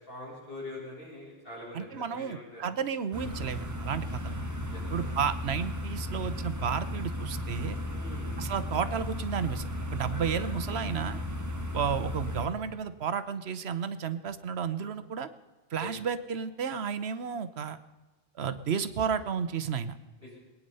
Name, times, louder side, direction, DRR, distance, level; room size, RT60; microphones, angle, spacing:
voice 1, 0.0-2.6 4.7-4.8 7.9-8.3 15.8-15.9 20.2-20.4, left 2 dB, 65° left, -6 dB, 7.0 m, -43 dB
voice 2, 1.7-4.4 4.9-7.8 8.4-11.2 11.7-15.3 15.7-17.8 18.3-19.9, right 7 dB, 85° right, 12 dB, 1.1 m, -32 dB
sound 1, 3.1-12.5, left 1 dB, 15° right, 1.3 m, -35 dB
21.5 x 9.6 x 5.5 m, 1.2 s
omnidirectional pair, 1.0 m